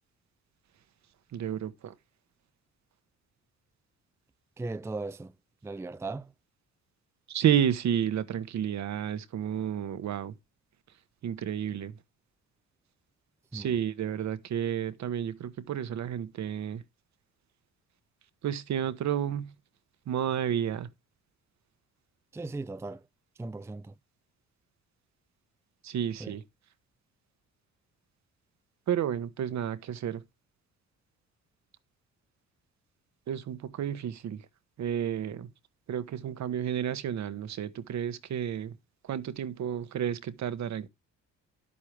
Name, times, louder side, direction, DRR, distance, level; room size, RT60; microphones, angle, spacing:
voice 1, 1.3-1.9 7.3-10.3 11.2-11.9 13.5-16.8 18.4-19.5 20.1-20.9 25.8-26.4 28.9-30.2 33.3-34.5 34.8-35.5 35.9-38.7 39.0-40.9, right 9 dB, 65° right, 1.3 m, -31 dB
voice 2, 4.6-5.3 5.6-6.3 13.5-13.8 22.3-23.1 23.4-23.9 26.2-26.4, right 3 dB, 10° right, 0.5 m, -37 dB
10.5 x 8.4 x 3.4 m
cardioid pair, 90°, 30 cm